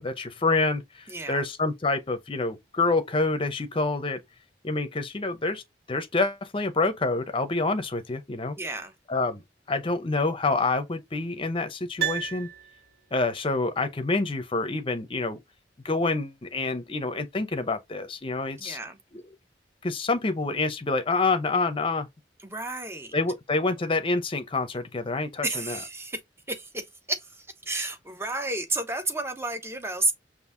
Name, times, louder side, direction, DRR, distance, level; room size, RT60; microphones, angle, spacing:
voice 1, 0.0-4.2 4.6-5.6 5.9-8.6 9.1-9.4 9.7-12.5 13.1-15.4 15.8-18.8 19.8-22.1 23.1-25.8, left 3 dB, 30° left, 0.7 m, -27 dB
voice 2, 1.1-1.4 8.6-8.9 18.6-19.0 22.4-23.1 25.4-26.2 26.5-30.1, right 2 dB, 15° right, 0.8 m, -31 dB
Piano, 12.0-13.2 13.5-13.6, right 10 dB, 60° right, 2.0 m, -32 dB
5.4 x 2.6 x 2.5 m
head